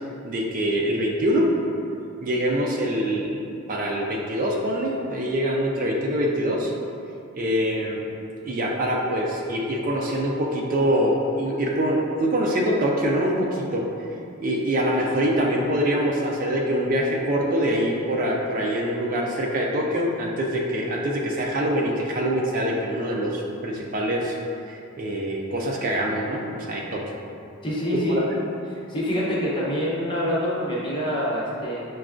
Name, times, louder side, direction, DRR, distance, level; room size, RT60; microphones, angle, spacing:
voice 1, 0.2-1.5 2.2-3.4 3.7-6.7 7.3-8.0 8.4-13.8 14.4-24.4 24.7-27.1 28.1-28.2, equal, 40° right, -1 dB, 0.3 m, -24 dB
voice 2, 27.6-28.3 28.7-31.9, equal, 25° left, -6 dB, 0.7 m, -26 dB
6.0 x 2.2 x 2.4 m, 2.6 s
head